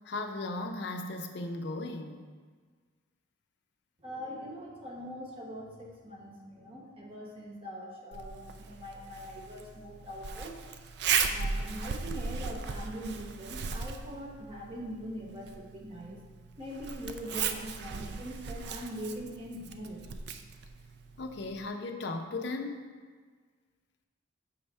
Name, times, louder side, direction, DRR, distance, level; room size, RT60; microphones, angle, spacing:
voice 1, 0.1-2.3 21.2-22.8, left 2 dB, 60° left, 5 dB, 0.5 m, -36 dB
voice 2, 4.0-10.6 11.3-16.2 16.6-20.1, equal, 30° right, -2 dB, 0.9 m, -42 dB
Zipper (clothing), 8.1-21.7, right 5 dB, 55° right, 0.3 m, -37 dB
7.1 x 3.4 x 5.4 m, 1.5 s
head